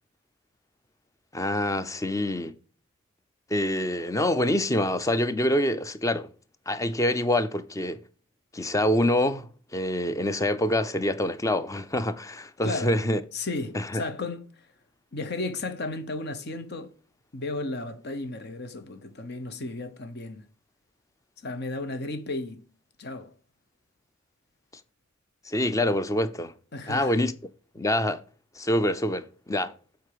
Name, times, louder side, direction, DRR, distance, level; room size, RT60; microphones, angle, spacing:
voice 1, 1.3-2.5 3.5-6.3 6.7-8.0 8.5-13.2 13.7-14.0 25.5-26.5 26.9-27.3 27.8-28.2 28.6-29.7, left 1 dB, 15° left, 0.6 m, -26 dB
voice 2, 12.6-13.0 13.3-14.7 15.1-16.9 17.3-20.4 21.4-22.6 23.0-23.3 26.7-27.1, left 2 dB, 50° left, 0.9 m, -34 dB
7.9 x 4.6 x 6.7 m
head